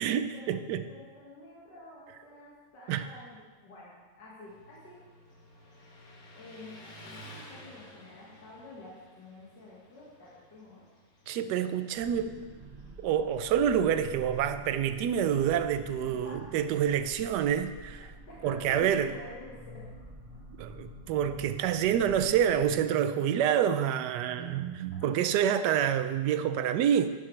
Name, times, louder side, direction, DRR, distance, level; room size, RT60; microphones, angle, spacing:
voice 1, 0.0-0.8 2.9-3.1 11.3-12.4 13.0-18.1 18.4-19.1 20.6-27.1, right 9 dB, 75° right, 10 dB, 1.1 m, -27 dB
voice 2, 0.9-5.0 6.3-10.8 15.7-16.4 18.3-19.8 21.6-21.7 24.3-24.5 25.0-25.1, left 2 dB, 70° left, -7 dB, 2.6 m, -49 dB
Motorcycle, 4.5-17.1, equal, 55° left, 1.8 m, -54 dB
sound 1, 11.9-22.7, right 1 dB, 35° right, 0.7 m, -48 dB
11.0 x 11.0 x 3.3 m, 1.4 s
omnidirectional pair, 2.0 m